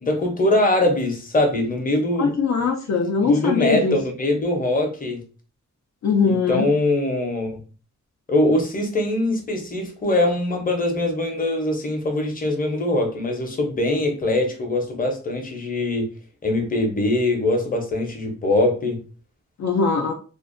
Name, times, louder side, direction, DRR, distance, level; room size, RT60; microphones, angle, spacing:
voice 1, 0.0-2.3 3.2-5.2 6.3-7.6 8.3-16.1 16.4-19.0, left 1 dB, 25° left, 0.7 m, -22 dB
voice 2, 2.2-4.0 6.0-6.7 19.6-20.1, left 5 dB, 60° left, 0.5 m, -21 dB
2.6 x 2.1 x 2.5 m
wide cardioid pair, 90°, 31 cm